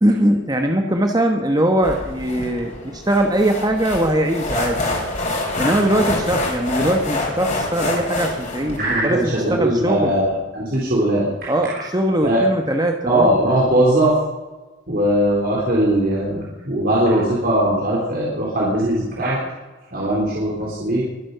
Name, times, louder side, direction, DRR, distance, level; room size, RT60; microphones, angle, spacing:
voice 1, 0.0-4.8 5.6-10.1 11.5-13.4, right 1 dB, 20° right, 4 dB, 1.2 m, -21 dB
sound 1, 1.8-8.8, left 2 dB, 40° left, 5.3 m, -26 dB
voice 2, 8.7-11.3 12.2-12.4 13.1-14.2 14.9-19.4 19.9-21.0, right 1 dB, 50° right, -5 dB, 3.9 m, -19 dB
23.0 x 8.6 x 6.8 m, 1.2 s
head